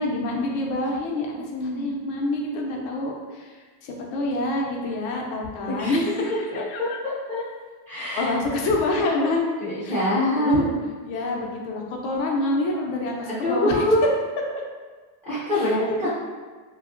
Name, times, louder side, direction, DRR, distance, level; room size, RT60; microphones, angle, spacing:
voice 1, 0.0-1.3 1.6-7.0 8.2-9.5 9.8-10.7 11.0-13.8 15.5-15.7, left 2 dB, 90° left, 0 dB, 0.7 m, -27 dB
voice 2, 1.5-1.9 5.8-7.4 7.9-8.3 9.6-10.7 13.2-14.1 15.3-16.1, equal, 15° right, -12 dB, 0.3 m, -25 dB
2.8 x 2.3 x 2.5 m, 1.4 s
cardioid pair, 170°, 48 cm